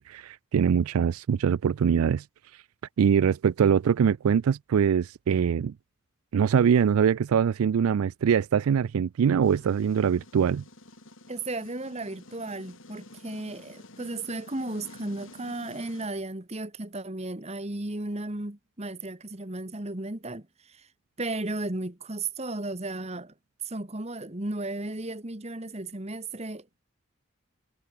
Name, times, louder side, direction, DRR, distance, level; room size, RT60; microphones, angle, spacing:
voice 1, 0.0-2.2 3.0-5.7 6.3-10.6, right 7 dB, 85° right, 0.4 m, -23 dB
sound 1, 9.4-16.1, left 2 dB, 65° left, 4.5 m, -50 dB
voice 2, 11.3-20.9 21.2-23.3 23.6-26.8, right 2 dB, 30° right, 1.6 m, -35 dB
head